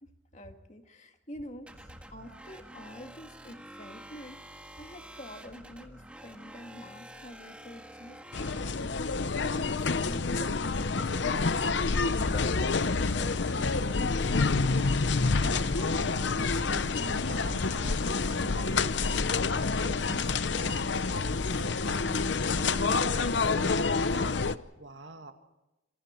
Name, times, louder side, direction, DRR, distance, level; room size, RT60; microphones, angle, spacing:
voice 1, 0.0-14.6, left 1 dB, 35° left, 5 dB, 2.0 m, -47 dB
sound 1, 1.7-9.2, right 1 dB, 5° right, 1.6 m, -48 dB
sound 2, 8.3-24.6, left 4 dB, 60° left, 0.8 m, -28 dB
voice 2, 15.2-24.4 24.7-25.3, right 2 dB, 65° right, 6 dB, 2.1 m, -46 dB
27.5 x 25.0 x 4.5 m, 0.98 s
head